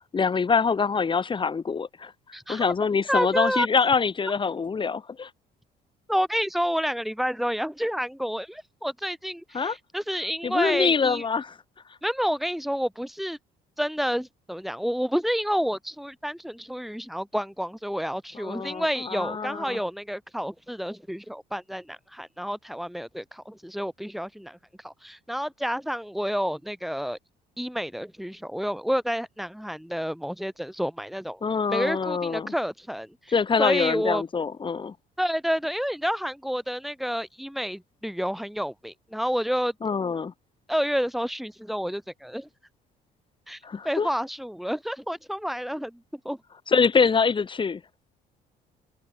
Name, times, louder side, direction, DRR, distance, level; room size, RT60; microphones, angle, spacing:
voice 1, 0.1-2.1 2.5-5.3 9.5-9.8 10.4-11.5 18.4-19.8 31.4-32.5 33.3-34.9 39.8-40.3 43.6-44.1 46.7-47.8, left 5 dB, 30° left, 3.3 m, -25 dB
voice 2, 2.3-2.7 3.1-3.7 6.1-11.2 12.0-13.4 13.8-24.6 24.8-27.2 27.6-31.4 31.7-34.2 35.2-39.7 40.7-42.5 43.5-43.6 43.8-46.4, equal, ahead, 7.4 m, -29 dB
open air
cardioid pair, 110°, 17 cm